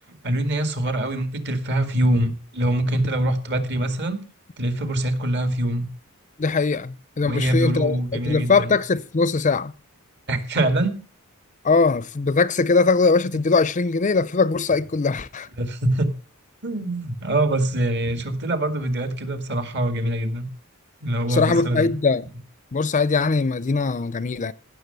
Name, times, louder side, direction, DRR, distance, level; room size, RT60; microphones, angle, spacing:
voice 1, 0.2-4.2 4.6-5.9 7.2-8.7 10.3-11.0 15.6-16.1 16.6-20.5 21.0-21.9, right 1 dB, 55° right, 2.2 m, -24 dB
voice 2, 6.4-9.7 11.6-15.5 21.3-22.3 22.7-24.5, left 4 dB, 35° left, 0.5 m, -21 dB
16.0 x 6.7 x 6.7 m
head